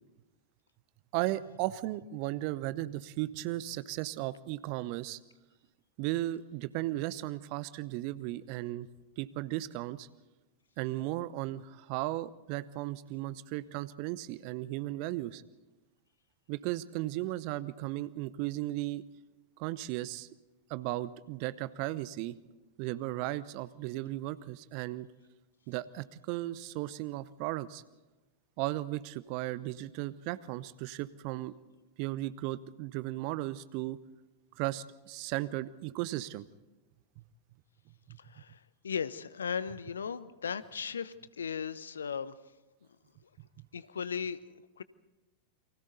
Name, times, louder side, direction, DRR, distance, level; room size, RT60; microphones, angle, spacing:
voice 1, 1.1-5.2 6.0-8.9 9.2-10.1 10.8-15.4 16.5-19.0 19.6-20.3 20.7-22.4 22.8-25.1 25.7-27.8 28.6-31.5 32.0-34.0 34.6-36.5 37.2-37.3 38.1-38.2, right 16 dB, 45° right, 17 dB, 0.9 m, -36 dB
voice 2, 38.2-42.4 43.7-44.8, left 6 dB, 70° left, 16 dB, 0.9 m, -37 dB
29.5 x 24.0 x 4.1 m, 1.1 s
figure-of-eight pair, 90°, 0 cm